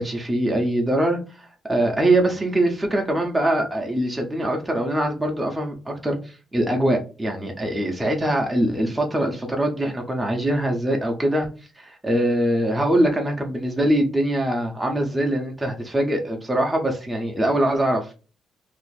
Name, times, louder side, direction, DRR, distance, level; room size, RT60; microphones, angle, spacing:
voice 1, 0.0-6.2 6.5-11.5 11.8-18.0, right 1 dB, 10° right, 0.6 m, -23 dB
2.5 x 2.4 x 3.9 m
cardioid pair, 160°, 0 cm